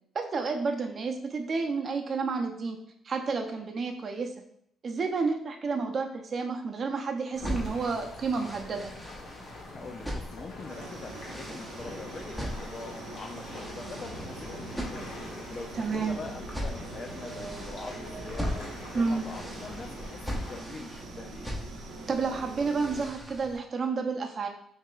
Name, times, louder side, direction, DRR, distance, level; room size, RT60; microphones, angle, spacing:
voice 1, 0.1-2.8 3.0-4.3 4.8-8.9 15.7-16.2 18.9-19.2 22.1-24.5, right 4 dB, 45° right, 3 dB, 0.7 m, -30 dB
sound 1, 7.3-20.6, left 1 dB, 80° left, 1.2 m, -44 dB
sound 2, 7.3-23.6, equal, 10° left, 1.0 m, -40 dB
voice 2, 9.7-15.0 15.5-21.5, left 4 dB, 45° left, 3 dB, 0.4 m, -44 dB
sound 3, 10.7-23.1, right 3 dB, 85° right, 0.9 m, -44 dB
5.6 x 2.9 x 2.4 m, 0.71 s
cardioid pair, 90°, 0 cm